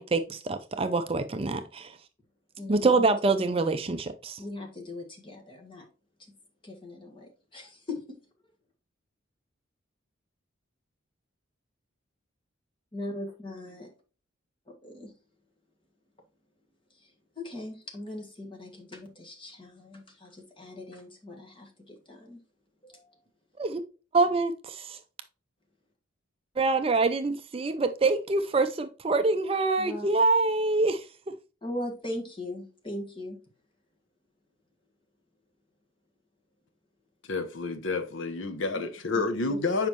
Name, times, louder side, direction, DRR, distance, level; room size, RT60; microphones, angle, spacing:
voice 1, 0.0-1.9 2.7-4.4 23.6-23.8 24.1-25.0 26.6-31.0, right 3 dB, 25° right, 0.4 m, -25 dB
voice 2, 2.6-3.0 3.4-3.6 4.4-5.9 6.6-8.0 12.9-13.9 14.8-15.1 17.0-17.1 17.4-22.4 22.8-23.2 29.8-30.1 31.6-33.4 38.7-38.8 39.1-39.6, left 1 dB, 25° left, 1.6 m, -40 dB
voice 3, 37.2-39.9, left 3 dB, 70° left, 0.7 m, -29 dB
7.2 x 5.2 x 3.0 m
head